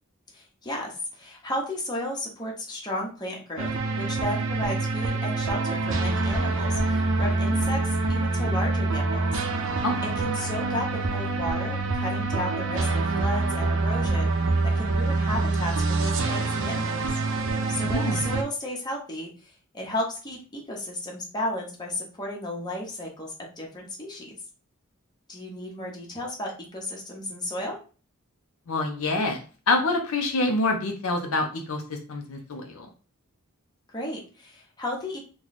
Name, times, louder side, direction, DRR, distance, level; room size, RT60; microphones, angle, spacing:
voice 1, 0.3-9.4 10.2-14.3 14.8-17.0 17.7-24.4 25.3-27.8 33.9-35.2, left 1 dB, 20° left, -1 dB, 0.9 m, -34 dB
sound 1, 3.6-18.4, right 3 dB, 60° right, 0.6 m, -26 dB
voice 2, 9.8-10.2 17.7-18.3 28.7-32.9, left 2 dB, 65° left, 4 dB, 0.6 m, -27 dB
3.0 x 2.3 x 4.0 m, 0.36 s
head